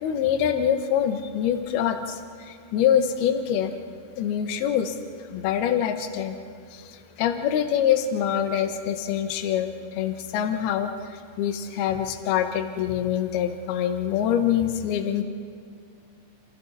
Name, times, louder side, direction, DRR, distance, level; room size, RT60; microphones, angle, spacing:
voice 1, 0.0-2.2 2.5-3.7 4.2-4.9 5.3-6.4 7.2-10.9 11.4-15.2, left 9 dB, 65° left, 7 dB, 2.8 m, -25 dB
28.5 x 28.0 x 4.1 m, 2.4 s
omnidirectional pair, 5.4 m